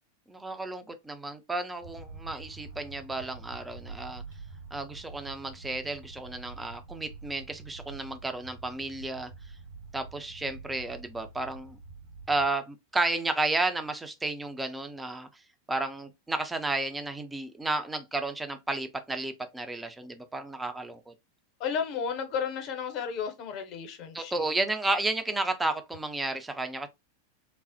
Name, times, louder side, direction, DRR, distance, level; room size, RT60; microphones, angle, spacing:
voice 1, 0.3-4.2 4.7-9.3 9.9-11.8 12.3-15.3 15.7-21.1 24.1-26.9, right 2 dB, 10° right, 0.4 m, -32 dB
sound 1, 1.8-12.5, right 4 dB, 70° right, 1.9 m, -46 dB
voice 2, 21.6-24.5, left 6 dB, 40° left, 0.8 m, -33 dB
3.1 x 2.0 x 2.7 m
figure-of-eight pair, 90°, 0 cm